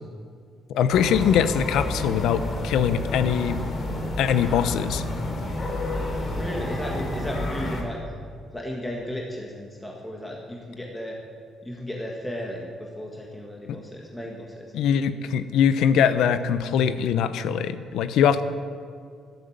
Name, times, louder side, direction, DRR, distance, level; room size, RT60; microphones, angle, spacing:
voice 1, 0.7-3.6 4.2-5.0 13.7-13.8 14.7-18.4, left 8 dB, 90° left, 12 dB, 0.8 m, -22 dB
sound 1, 0.9-7.8, left 1 dB, 45° left, 3.0 m, -30 dB
voice 2, 6.4-8.0 8.5-11.2 11.6-14.7, left 1 dB, 10° left, -1 dB, 1.7 m, -34 dB
13.5 x 12.5 x 8.0 m, 2.2 s
cardioid pair, 140°, 0 cm